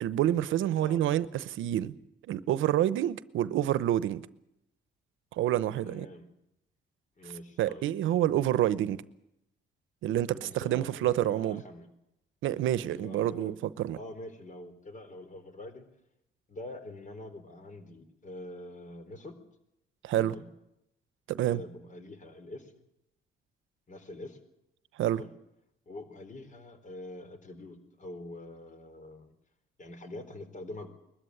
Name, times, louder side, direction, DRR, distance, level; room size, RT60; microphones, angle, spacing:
voice 1, 0.0-1.9 2.3-4.2 5.3-6.1 7.6-9.0 10.0-11.6 12.4-14.0 20.0-20.3 21.3-21.6 25.0-25.2, right 12 dB, 85° right, 0.9 m, -28 dB
voice 2, 5.8-6.3 7.2-7.8 10.3-11.9 12.8-13.5 14.0-15.9 16.5-19.4 20.2-20.5 21.4-22.9 23.9-24.4 25.2-25.3 25.9-29.3 29.8-30.9, left 1 dB, 40° left, 3.9 m, -45 dB
21.0 x 13.5 x 9.8 m
cardioid pair, 90°, 20 cm